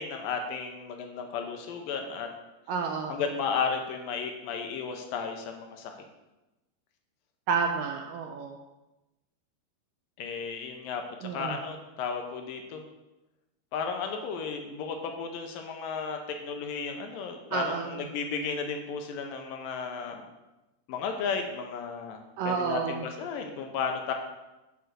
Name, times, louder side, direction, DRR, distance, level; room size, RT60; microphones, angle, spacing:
voice 1, 0.0-2.3 3.1-5.9 10.2-12.8 13.7-20.2 20.9-22.2 22.4-24.1, left 5 dB, 75° left, 4 dB, 2.3 m, -34 dB
voice 2, 2.7-3.2 7.5-8.6 11.2-11.5 17.5-17.9 22.4-23.0, right 5 dB, 80° right, 3 dB, 1.9 m, -30 dB
8.1 x 5.4 x 6.3 m, 1.0 s
omnidirectional pair, 4.6 m